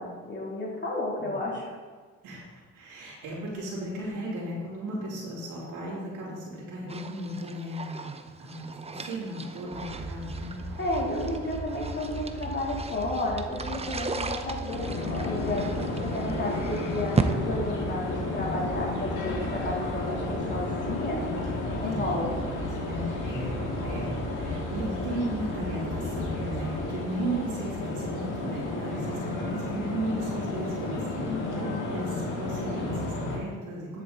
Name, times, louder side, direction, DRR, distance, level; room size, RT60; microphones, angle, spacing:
voice 1, 0.0-1.7 10.8-21.3 21.8-22.4 31.3-31.7, left 2 dB, 35° left, -3 dB, 3.1 m, -32 dB
voice 2, 2.7-8.1 8.4-10.6 21.8-22.2 22.7-34.0, right 1 dB, 85° right, -6 dB, 3.1 m, -36 dB
sound 1, 6.9-17.3, right 4 dB, 20° right, 0.7 m, -36 dB
sound 2, 9.7-26.8, right 2 dB, 60° right, 2.4 m, -39 dB
sound 3, 14.7-33.4, left 2 dB, 85° left, 2.1 m, -32 dB
9.9 x 7.6 x 4.0 m, 1.5 s
cardioid pair, 90°, 30 cm